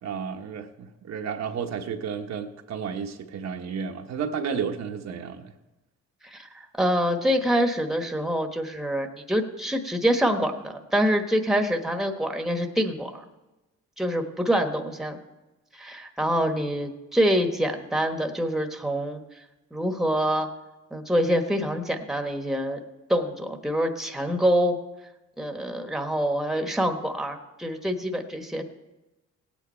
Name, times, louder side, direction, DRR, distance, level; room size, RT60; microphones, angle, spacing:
voice 1, 0.0-5.5, right 6 dB, 65° right, 4 dB, 1.2 m, -32 dB
voice 2, 6.2-13.2 14.0-15.2 15.7-19.2 19.7-20.5 20.9-22.8 23.1-24.8 25.4-28.6, equal, ahead, 5 dB, 1.3 m, -25 dB
17.0 x 9.1 x 4.4 m, 1.1 s
cardioid pair, 90°, 30 cm